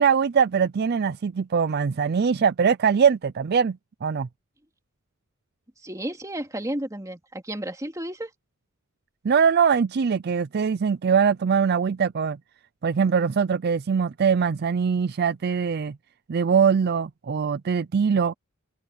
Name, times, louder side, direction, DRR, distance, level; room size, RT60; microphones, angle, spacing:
voice 1, 0.0-4.3 9.2-12.4 12.8-16.0 16.3-18.3, right 6 dB, 50° right, 0.4 m, -22 dB
voice 2, 5.8-8.3, right 1 dB, 15° right, 2.6 m, -32 dB
head